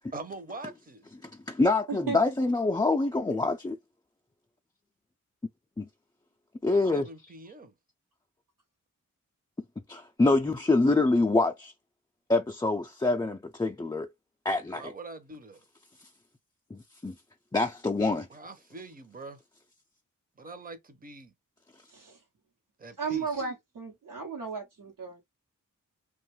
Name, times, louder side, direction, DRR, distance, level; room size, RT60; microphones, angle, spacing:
voice 1, 0.1-1.0 6.6-7.7 14.7-15.6 18.3-19.4 20.4-21.3 22.8-23.4, right 2 dB, 25° right, 0.7 m, -43 dB
voice 2, 1.2-3.8 5.8-5.9 6.6-7.1 9.9-11.7 12.3-14.1 14.4-14.9 16.7-17.1 17.5-18.3, left 2 dB, 15° left, 0.4 m, -26 dB
voice 3, 1.9-2.2 21.9-22.2 23.0-25.2, right 5 dB, 80° right, 1.0 m, -34 dB
2.5 x 2.3 x 3.1 m
cardioid pair, 45°, 32 cm